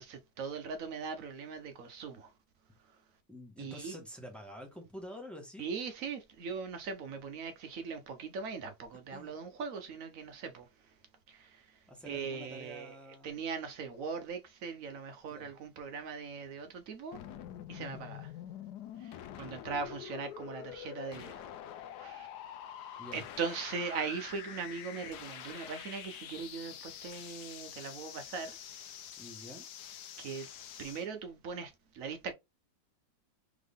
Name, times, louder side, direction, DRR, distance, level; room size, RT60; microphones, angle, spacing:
voice 1, 0.0-2.3 3.6-4.0 5.6-10.7 11.3-11.6 12.1-12.9 13.2-17.2 17.7-18.3 19.0-21.4 22.0-22.3 23.1-28.5 30.2-30.5 30.8-32.3, right 5 dB, 65° right, 0.8 m, -40 dB
voice 2, 3.3-5.7 9.1-9.3 11.9-13.4 15.3-15.5 17.8-18.0 19.3-19.5 23.0-23.2 29.2-29.7, equal, ahead, 0.9 m, -48 dB
sound 1, 17.1-31.1, left 10 dB, 70° left, 1.1 m, -46 dB
3.7 x 3.6 x 3.5 m
omnidirectional pair, 2.1 m